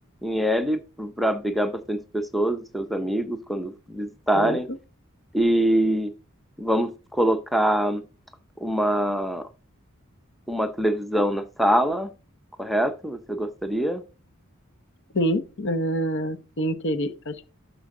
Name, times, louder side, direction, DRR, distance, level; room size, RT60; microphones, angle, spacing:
voice 1, 0.2-4.7 5.3-6.1 6.6-8.0 8.6-9.4 10.5-12.1 12.6-14.0, right 1 dB, ahead, 0.6 m, -24 dB
voice 2, 4.3-4.8 15.1-17.5, equal, 55° left, 0.9 m, -26 dB
12.5 x 5.2 x 3.7 m
head